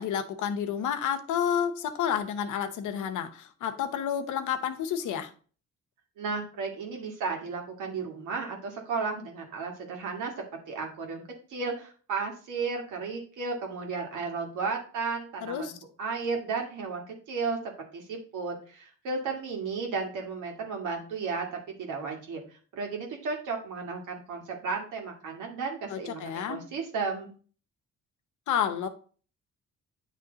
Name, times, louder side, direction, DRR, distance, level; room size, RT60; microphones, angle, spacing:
voice 1, 0.0-5.3 15.4-15.7 25.9-26.6 28.5-28.9, left 8 dB, 80° left, 0.9 m, -30 dB
voice 2, 6.2-10.3 10.7-11.2 11.5-17.6 17.9-27.3, right 4 dB, 85° right, 1.8 m, -34 dB
9.2 x 3.2 x 3.9 m
cardioid pair, 90°, 30 cm